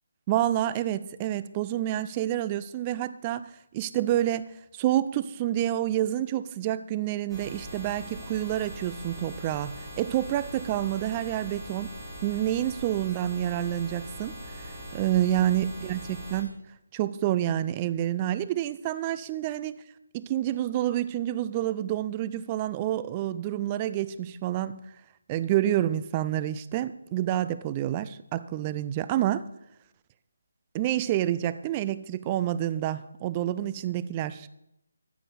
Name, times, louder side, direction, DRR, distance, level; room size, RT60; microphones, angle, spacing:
voice 1, 0.3-3.5 3.7-4.5 4.7-11.9 12.2-16.0 16.3-16.6 16.9-19.8 20.1-24.8 25.3-29.4 30.7-34.5, right 12 dB, 20° right, 14 dB, 0.5 m, -28 dB
sound 1, 7.3-16.4, equal, 5° right, 3.9 m, -41 dB
14.5 x 6.0 x 7.1 m, 0.82 s
figure-of-eight pair, 155°, 0 cm